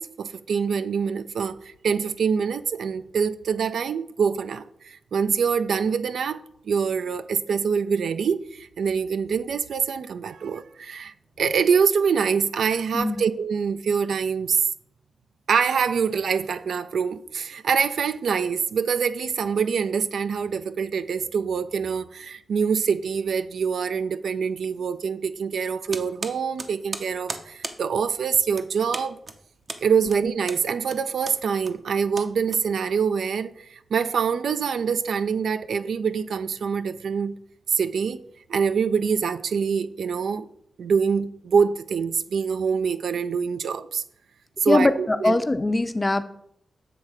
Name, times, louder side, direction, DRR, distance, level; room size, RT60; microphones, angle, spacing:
voice 1, 0.0-14.6 15.5-29.2 29.8-37.3 37.7-38.2 38.5-40.5 40.8-44.0 44.6-45.4, right 6 dB, 80° right, 0.3 m, -25 dB
sound 1, 25.9-33.1, right 3 dB, 55° right, 0.7 m, -38 dB
voice 2, 44.7-46.2, left 2 dB, 25° left, 0.5 m, -22 dB
7.7 x 3.2 x 4.8 m
cardioid pair, 55°, 0 cm